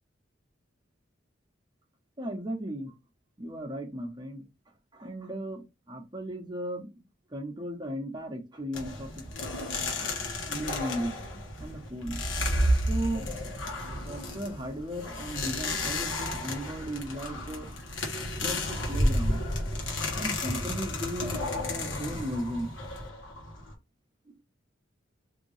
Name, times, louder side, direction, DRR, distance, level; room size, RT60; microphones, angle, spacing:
voice 1, 2.2-2.9 3.4-4.4 4.9-7.0 7.3-9.2 10.5-11.2 11.6-12.2 12.9-13.3 14.0-17.7 18.3-19.4 20.2-22.7, equal, 20° right, 0.8 m, -36 dB
sound 1, 8.7-23.7, left 1 dB, 85° left, 1.2 m, -32 dB
3.5 x 2.7 x 3.1 m
head